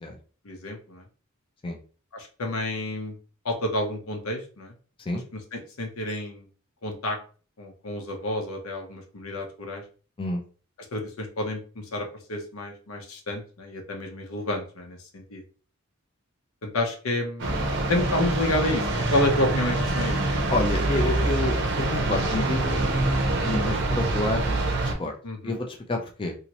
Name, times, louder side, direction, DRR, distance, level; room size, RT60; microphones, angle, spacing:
voice 1, 0.4-1.0 2.1-3.2 3.4-4.7 5.3-6.5 6.8-7.2 7.6-9.8 10.9-15.4 16.6-18.9 19.1-20.2 25.2-25.6, left 1 dB, 85° left, 3 dB, 0.8 m, -30 dB
sound 1, 17.4-24.9, right 2 dB, 55° right, 0.7 m, -25 dB
voice 2, 20.5-22.8 23.4-24.7 25.0-25.2 25.4-26.3, left 2 dB, 25° left, 2 dB, 0.4 m, -28 dB
2.9 x 2.7 x 2.9 m, 0.38 s
head